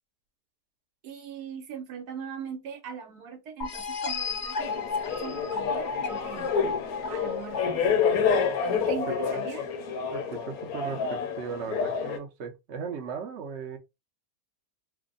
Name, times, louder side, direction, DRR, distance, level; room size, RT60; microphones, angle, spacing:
voice 1, 1.0-6.5 7.1-7.8 8.9-9.7, right 7 dB, 75° right, 1.3 m, -40 dB
sound 1, 3.6-9.1, left 4 dB, 40° left, 0.6 m, -34 dB
sound 2, 4.6-12.2, left 6 dB, 70° left, 1.1 m, -28 dB
voice 2, 10.1-13.8, right 6 dB, 55° right, 0.9 m, -37 dB
3.3 x 2.1 x 3.7 m
omnidirectional pair, 1.7 m